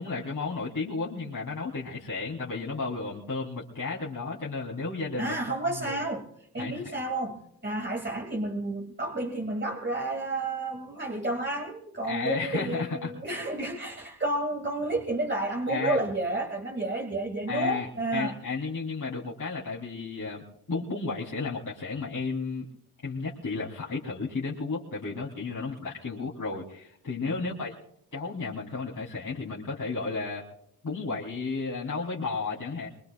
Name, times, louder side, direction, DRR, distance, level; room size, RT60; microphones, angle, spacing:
voice 1, 0.0-5.3 5.6-5.9 6.6-6.8 12.1-13.1 15.7-16.0 17.5-22.7 23.0-27.8 28.1-30.4 30.8-32.9, left 4 dB, 55° left, -7 dB, 3.0 m, -33 dB
voice 2, 5.2-6.3 6.5-18.4 27.3-27.7, right 2 dB, 30° right, 1 dB, 2.2 m, -31 dB
23.5 x 22.0 x 2.3 m, 0.72 s
cardioid pair, 55°, 39 cm